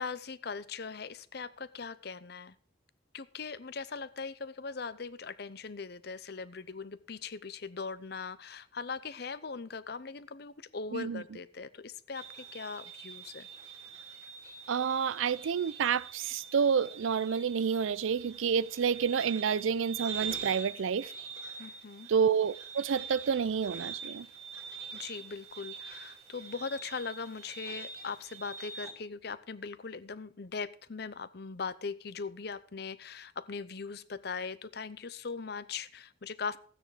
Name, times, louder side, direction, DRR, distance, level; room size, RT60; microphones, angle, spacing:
voice 1, 0.0-2.6 3.1-13.5 21.6-22.1 24.9-36.6, left 5 dB, 55° left, 0.6 m, -40 dB
voice 2, 10.9-11.2 14.7-21.1 22.1-24.3, right 6 dB, 85° right, 0.4 m, -29 dB
sound 1, 12.1-28.9, right 6 dB, 15° right, 2.3 m, -44 dB
13.5 x 9.3 x 4.9 m
head